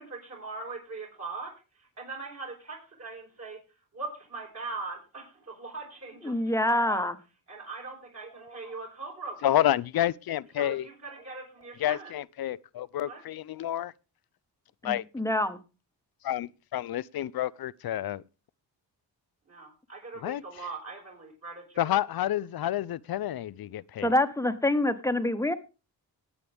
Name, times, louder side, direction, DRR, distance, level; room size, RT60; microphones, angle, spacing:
voice 1, 0.0-1.5 1.8-3.6 3.9-7.1 7.5-9.6 10.6-12.1 13.0-13.2 19.5-21.9, right 3 dB, 40° right, 5.3 m, -41 dB
voice 2, 6.2-7.2 14.8-15.6 24.0-25.5, left 1 dB, 10° left, 1.3 m, -26 dB
voice 3, 9.4-10.9 11.8-13.9 14.8-15.0 16.2-18.2 20.2-20.7 21.8-24.1, left 12 dB, 65° left, 0.6 m, -29 dB
19.0 x 8.5 x 3.5 m
cardioid pair, 95°, 39 cm